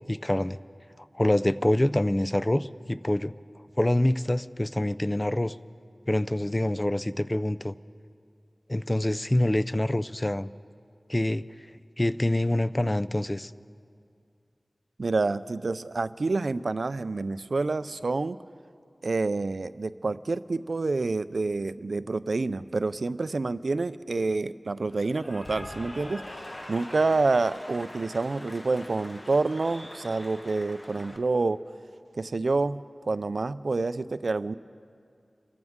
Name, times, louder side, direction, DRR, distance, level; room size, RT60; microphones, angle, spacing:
voice 1, 0.1-0.6 1.1-3.3 3.8-5.6 6.1-7.7 8.7-10.5 11.1-11.4 12.0-13.5, left 1 dB, 20° left, 14 dB, 0.4 m, -25 dB
voice 2, 15.0-18.4 19.0-26.2 26.7-31.6 32.2-34.5, right 3 dB, 75° right, 14 dB, 0.4 m, -28 dB
Cheering / Applause, 24.9-31.2, left 1 dB, 40° left, 1.2 m, -43 dB
27.0 x 14.0 x 3.6 m, 2.3 s
wide cardioid pair, 65°, 0 cm